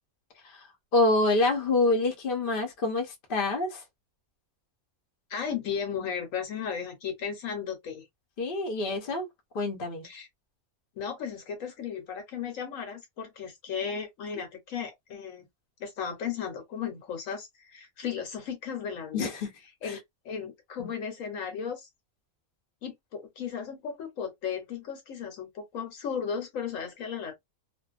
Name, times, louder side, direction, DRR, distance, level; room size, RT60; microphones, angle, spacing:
voice 1, 0.9-3.8 8.4-9.3 9.5-10.1 19.1-19.5 19.8-20.0 20.8-20.9, left 2 dB, 45° left, 0.8 m, -26 dB
voice 2, 5.3-8.0 10.0-10.3 11.0-15.5 15.8-19.3 19.8-21.9 22.8-27.3, left 7 dB, 70° left, 1.2 m, -35 dB
2.6 x 2.1 x 2.3 m
omnidirectional pair, 1.5 m